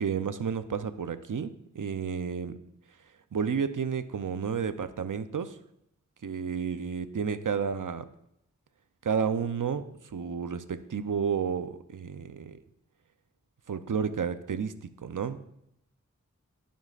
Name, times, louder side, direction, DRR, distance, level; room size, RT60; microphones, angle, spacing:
voice 1, 0.0-2.6 3.3-5.6 6.2-8.1 9.0-9.8 10.1-12.6 13.7-15.4, right 6 dB, 80° right, 10 dB, 0.7 m, -31 dB
17.5 x 9.3 x 2.5 m, 0.79 s
wide cardioid pair, 60°, 31 cm